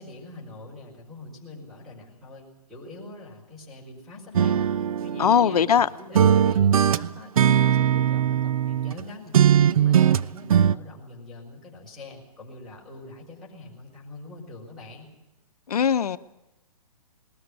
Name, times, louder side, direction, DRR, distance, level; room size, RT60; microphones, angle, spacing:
voice 1, 0.0-4.7 5.0-5.7 5.9-15.1, left 2 dB, ahead, 5.0 m, -44 dB
sound 1, 4.3-5.8 6.1-9.0 9.3-10.7, right 9 dB, 65° right, 0.6 m, -20 dB
voice 2, 5.2-5.9 15.7-16.2, left 8 dB, 75° left, 0.9 m, -20 dB
20.0 x 13.5 x 9.9 m
hypercardioid pair, 150°, 20 cm